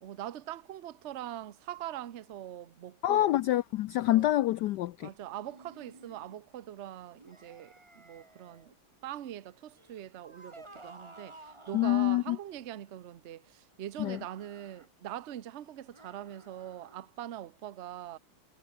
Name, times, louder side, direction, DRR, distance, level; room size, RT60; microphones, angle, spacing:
voice 1, 0.0-3.4 4.1-4.4 5.0-8.7 9.0-18.2, right 12 dB, 70° right, 0.6 m, -42 dB
voice 2, 3.0-5.1 11.7-12.4 14.0-14.2, left 15 dB, 85° left, 0.9 m, -26 dB
sound 1, 5.4-6.4 7.1-8.7 9.7-12.1 14.0-14.9 15.9-17.1, right 2 dB, 15° right, 2.0 m, -54 dB
omnidirectional pair, 2.4 m